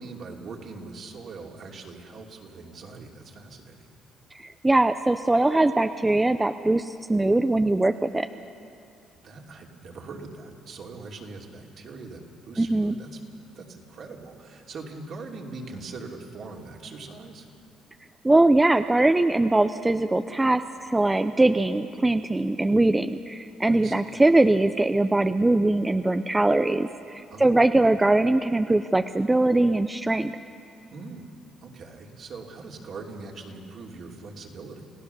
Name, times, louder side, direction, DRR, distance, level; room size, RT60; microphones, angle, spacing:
voice 1, 0.0-3.9 9.2-13.2 13.5-17.5 23.6-24.1 27.3-27.6 30.9-34.8, right 3 dB, 55° right, 1 dB, 2.9 m, -41 dB
voice 2, 4.4-8.3 12.6-12.9 18.2-30.3, right 2 dB, 15° right, 9 dB, 0.6 m, -21 dB
28.5 x 16.0 x 6.8 m, 2.5 s
cardioid pair, 95°, 0 cm